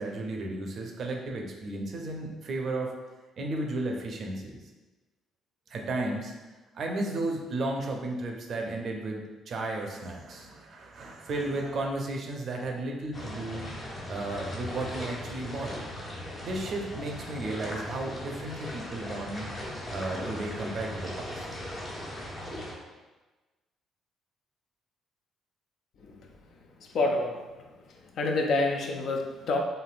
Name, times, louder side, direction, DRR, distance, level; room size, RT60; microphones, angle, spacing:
voice 1, 0.0-2.9 3.4-4.6 5.7-6.3 6.7-13.7 14.1-15.7 16.4-19.5 19.9-21.5, right 2 dB, 55° right, 1 dB, 0.5 m, -34 dB
sound 1, 13.1-22.7, left 1 dB, 35° left, 1.4 m, -38 dB
voice 2, 26.9-27.4 28.2-29.6, left 2 dB, 60° left, 2 dB, 0.4 m, -27 dB
3.2 x 2.6 x 2.4 m, 1.2 s
hypercardioid pair, 50°, 0 cm